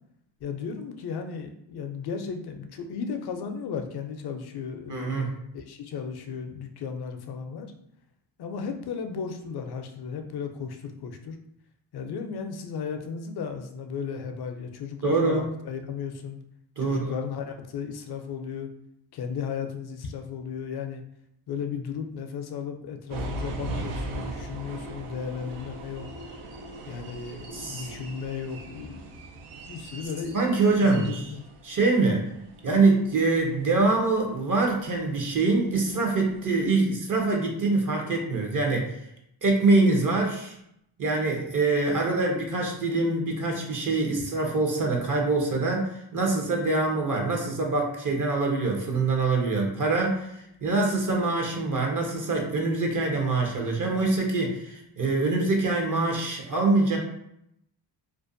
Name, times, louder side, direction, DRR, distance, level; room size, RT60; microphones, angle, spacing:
voice 1, 0.4-5.1 5.5-7.7 8.4-11.4 11.9-16.4 16.8-18.7 19.1-21.0 21.5-26.1 26.9-29.0 29.7-31.4, left 6 dB, 50° left, 6 dB, 0.5 m, -35 dB
voice 2, 4.9-5.3 15.0-15.5 16.8-17.2 27.5-27.9 30.3-31.2 31.6-32.2 32.6-39.0 39.4-40.6 41.0-57.0, right 3 dB, 40° right, 0 dB, 0.7 m, -24 dB
sound 1, 23.1-36.7, right 2 dB, 80° right, 0.6 m, -40 dB
2.5 x 2.1 x 2.5 m, 0.77 s
cardioid pair, 75°, 49 cm